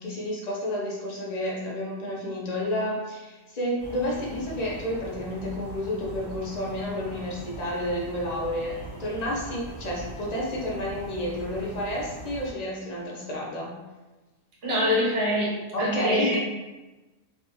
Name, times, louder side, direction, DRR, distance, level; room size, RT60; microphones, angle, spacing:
voice 1, 0.0-13.8 15.7-16.4, left 1 dB, 35° left, -4 dB, 0.7 m, -30 dB
sound 1, 3.8-12.5, right 2 dB, 20° right, 1.2 m, -41 dB
voice 2, 14.6-15.5 15.8-16.4, left 1 dB, 55° right, -6 dB, 1.5 m, -24 dB
3.3 x 3.1 x 3.0 m, 1.2 s
omnidirectional pair, 1.5 m